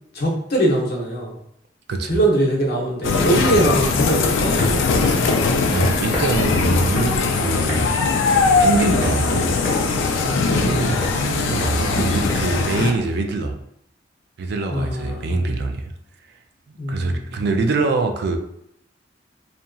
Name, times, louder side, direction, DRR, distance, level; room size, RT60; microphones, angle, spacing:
voice 1, 0.1-1.3 2.1-5.2 10.2-11.2 14.7-15.5 16.8-17.4, right 1 dB, 60° left, -2 dB, 0.7 m, -22 dB
sound 1, 3.0-12.9, left 4 dB, 85° left, 0.3 m, -20 dB
sound 2, 4.4-13.2, equal, 5° right, 0.8 m, -35 dB
voice 2, 5.7-7.9 8.6-9.5 10.5-13.5 14.4-15.8 16.7-18.4, right 3 dB, 60° right, 5 dB, 0.3 m, -24 dB
2.8 x 2.5 x 2.3 m, 0.73 s
head